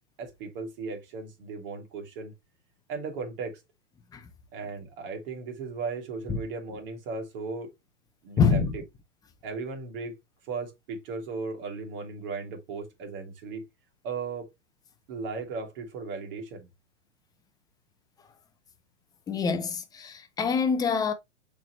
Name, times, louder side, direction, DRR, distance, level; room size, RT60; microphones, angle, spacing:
voice 1, 0.2-2.3 2.9-3.6 4.5-7.7 8.2-8.8 9.4-10.2 10.4-13.6 14.0-14.5 15.1-16.7, right 4 dB, 45° right, 3.0 m, -36 dB
voice 2, 8.4-8.8 19.3-21.1, left 5 dB, 10° left, 0.7 m, -25 dB
6.7 x 4.6 x 3.1 m
hypercardioid pair, 140°, 37 cm